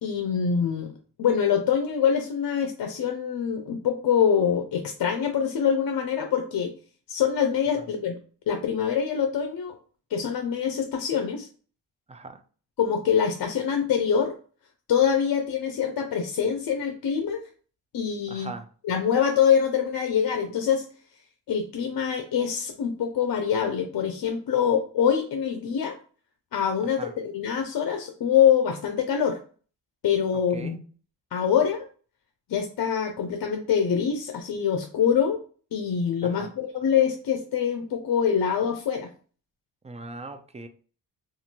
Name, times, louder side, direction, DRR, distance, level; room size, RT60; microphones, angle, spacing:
voice 1, 0.0-6.7 7.1-8.1 8.5-9.8 10.1-11.5 12.8-14.3 14.9-17.4 17.9-18.5 18.8-20.9 21.5-26.0 26.5-29.4 30.0-30.8 31.3-31.9 32.5-35.4 35.7-39.1, left 7 dB, 55° left, 0.6 m, -24 dB
voice 2, 12.1-12.4 18.3-18.7 26.9-27.1 30.5-30.8 36.2-36.5 39.8-40.7, right 3 dB, 15° right, 0.4 m, -40 dB
2.6 x 2.5 x 2.9 m
cardioid pair, 55°, 43 cm